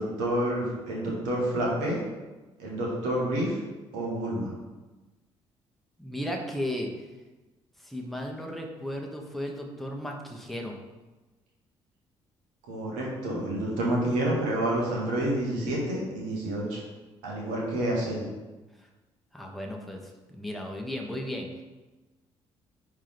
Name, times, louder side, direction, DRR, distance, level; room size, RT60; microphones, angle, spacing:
voice 1, 0.0-2.0 2.6-3.6 3.9-4.5 12.7-16.8 17.2-18.2, right 1 dB, 65° right, -3 dB, 1.9 m, -28 dB
voice 2, 6.0-6.9 7.8-10.7 19.3-20.0 20.3-21.5, left 1 dB, ahead, 1 dB, 1.2 m, -35 dB
10.5 x 3.7 x 3.5 m, 1.2 s
figure-of-eight pair, 45°, 14 cm